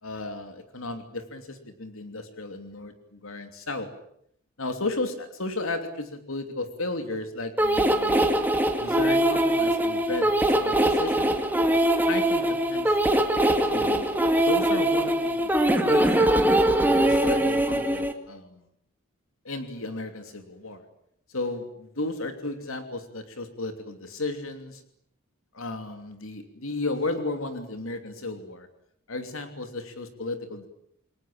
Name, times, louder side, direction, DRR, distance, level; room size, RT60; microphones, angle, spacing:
voice 1, 0.0-3.9 4.6-8.3 8.8-10.3 10.6-11.3 12.0-13.0 13.7-14.1 14.5-16.3 16.9-18.6 19.4-20.8 21.3-24.8 25.5-28.7 29.1-30.7, left 2 dB, 75° left, 7 dB, 3.0 m, -34 dB
sound 1, 7.6-18.1, right 1 dB, 10° right, 2.3 m, -22 dB
29.0 x 22.5 x 8.9 m, 0.73 s
head